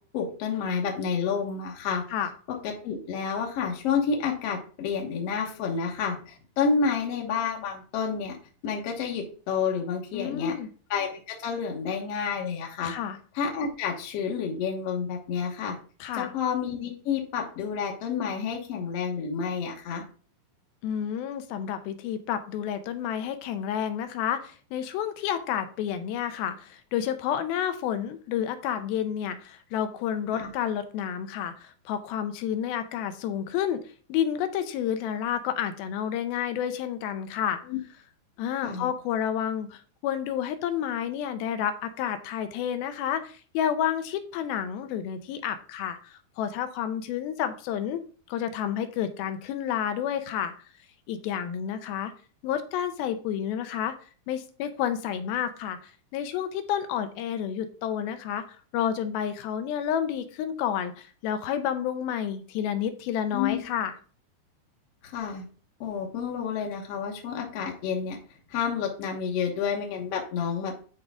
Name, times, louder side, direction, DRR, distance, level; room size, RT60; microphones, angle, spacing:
voice 1, 0.1-2.0 2.6-8.4 8.6-10.5 10.9-12.9 13.3-15.8 16.1-20.0 30.3-30.5 37.7-37.8 38.6-38.9 63.3-63.6 65.0-65.5 65.8-68.2 68.5-70.7, left 6 dB, 60° left, 0 dB, 1.7 m, -29 dB
voice 2, 10.1-10.7 12.8-13.2 16.0-16.3 20.8-33.8 34.1-37.6 38.4-48.0 48.3-50.5 51.1-52.1 52.4-53.9 54.3-58.4 58.7-64.0, left 9 dB, 80° left, 9 dB, 2.6 m, -30 dB
10.5 x 4.8 x 3.7 m, 0.41 s
omnidirectional pair, 4.4 m